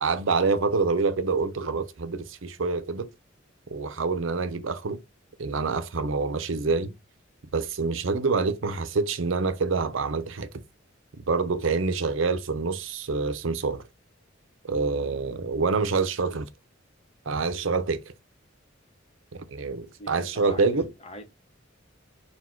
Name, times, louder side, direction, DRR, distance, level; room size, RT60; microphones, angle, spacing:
voice 1, 0.0-3.1 3.7-5.0 5.4-6.9 7.5-10.5 11.3-13.8 14.7-16.5 17.3-18.0 19.3-20.9, right 4 dB, 75° right, 0.6 m, -26 dB
voice 2, 20.0-21.2, equal, 30° left, 0.9 m, -43 dB
4.2 x 2.2 x 4.4 m
head